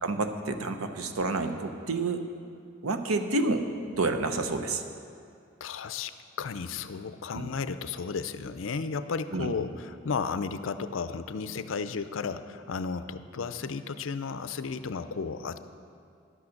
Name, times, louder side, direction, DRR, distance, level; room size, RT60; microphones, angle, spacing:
voice 1, 0.0-2.2 2.8-3.7 3.9-4.8 7.3-7.5 9.3-9.5, right 3 dB, 90° right, 7 dB, 0.8 m, -29 dB
voice 2, 5.6-6.1 6.4-15.6, left 5 dB, 70° left, 12 dB, 0.5 m, -33 dB
11.0 x 8.6 x 6.5 m, 2.4 s
head